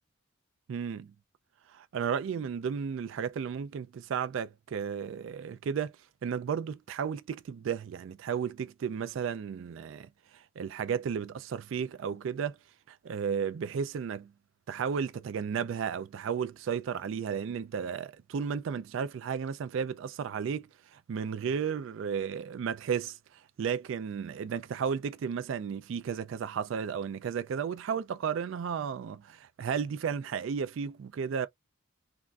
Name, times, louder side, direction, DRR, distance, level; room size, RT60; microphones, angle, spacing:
voice 1, 0.7-1.1 1.7-5.9 6.2-12.6 12.9-14.3 14.7-31.5, right 7 dB, 65° right, 0.3 m, -33 dB
3.4 x 2.5 x 2.3 m
head